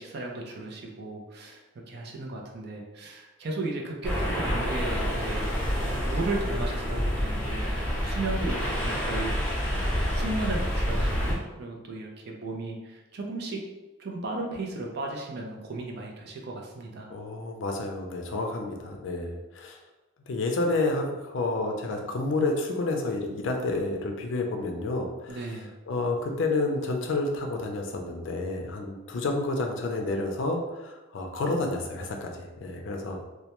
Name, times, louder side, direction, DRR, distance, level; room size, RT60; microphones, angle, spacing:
voice 1, 0.0-5.5 6.0-7.7 8.0-9.3 10.1-13.6 14.0-17.1 25.3-25.7, right 2 dB, 55° right, 0 dB, 0.4 m, -35 dB
sound 1, 4.0-11.3, equal, 5° left, 0.6 m, -28 dB
voice 2, 17.1-19.8 20.3-25.6 25.9-33.2, left 2 dB, 70° left, 2 dB, 0.4 m, -30 dB
2.2 x 2.1 x 2.8 m, 1.1 s
head